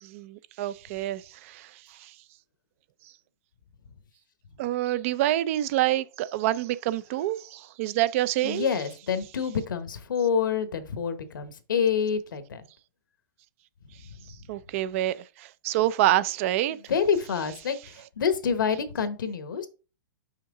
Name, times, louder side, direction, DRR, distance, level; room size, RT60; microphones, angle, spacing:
voice 1, 0.0-2.1 4.6-8.7 14.5-16.8, right 14 dB, 45° right, 0.4 m, -27 dB
voice 2, 8.4-12.6 16.9-17.8 18.2-19.7, left 6 dB, 90° left, 1.1 m, -27 dB
5.7 x 5.5 x 3.7 m
hypercardioid pair, 150°, 11 cm